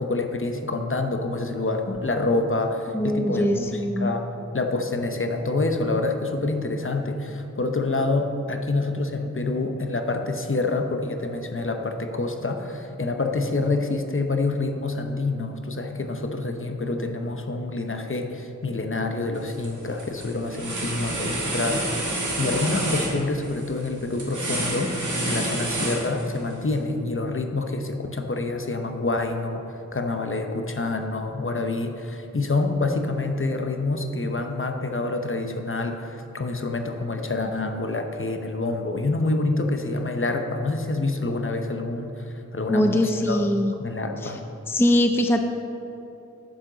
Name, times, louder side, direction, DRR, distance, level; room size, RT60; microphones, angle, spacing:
voice 1, 0.0-4.3 4.5-22.1 22.4-29.6 29.9-43.4 43.8-44.4, left 2 dB, 40° left, 5 dB, 0.8 m, -27 dB
voice 2, 2.9-4.1 42.7-43.7 44.2-44.3 44.7-45.4, left 1 dB, 10° left, 5 dB, 0.5 m, -22 dB
sound 1, 19.3-19.7 20.0-26.5, right 1 dB, 70° right, 1.9 m, -29 dB
10.5 x 7.3 x 3.9 m, 2.8 s
wide cardioid pair, 55°, 30 cm